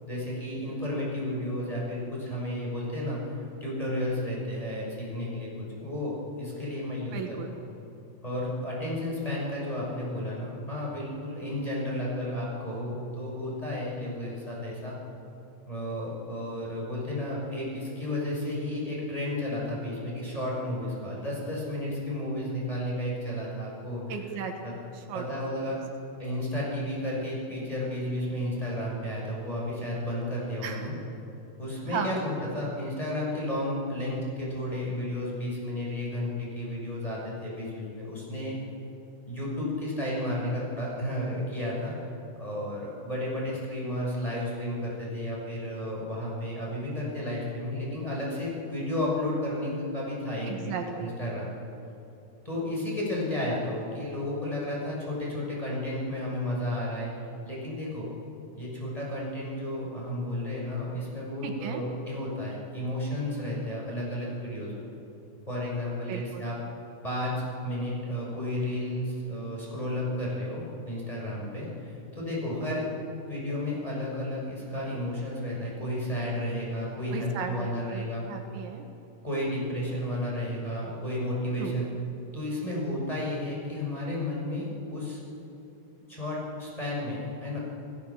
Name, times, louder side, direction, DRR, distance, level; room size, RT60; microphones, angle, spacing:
voice 1, 0.1-3.2 3.6-7.4 8.2-14.9 15.7-24.0 24.6-24.7 25.1-25.8 26.2-30.9 31.6-38.5 39.3-50.7 51.0-51.5 52.4-57.1 57.4-58.1 58.6-64.8 65.5-66.6 67.0-72.9 73.2-78.2 79.2-81.9 82.3-85.2 86.1-87.6, left 1 dB, 5° left, -5 dB, 6.2 m, -32 dB
voice 2, 7.1-7.6 24.1-24.5 24.9-25.3 30.6-30.9 31.9-32.2 50.5-51.2 61.4-61.8 66.1-66.5 77.1-78.9 81.6-81.8, right 7 dB, 80° right, 4 dB, 3.9 m, -35 dB
29.0 x 17.0 x 7.3 m, 2.8 s
omnidirectional pair, 5.3 m